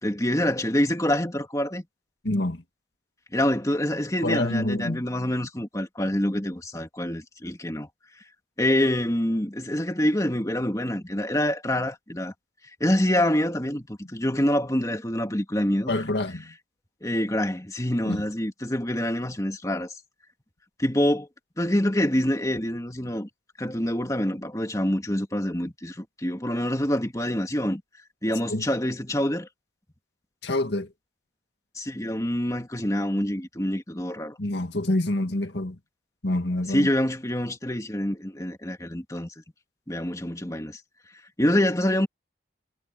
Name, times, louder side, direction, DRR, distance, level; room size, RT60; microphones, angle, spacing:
voice 1, 0.0-1.8 3.3-7.9 8.6-12.3 12.8-16.0 17.0-19.9 20.8-21.3 21.6-23.3 23.6-27.8 28.2-29.5 31.8-34.4 36.7-39.3 39.9-40.8 41.4-42.1, left 1 dB, 20° left, 2.3 m, -26 dB
voice 2, 2.2-2.6 4.2-5.0 15.9-16.5 18.1-18.2 28.5-28.6 30.4-30.9 34.4-35.8 36.2-36.9, left 1 dB, 70° left, 2.1 m, -27 dB
head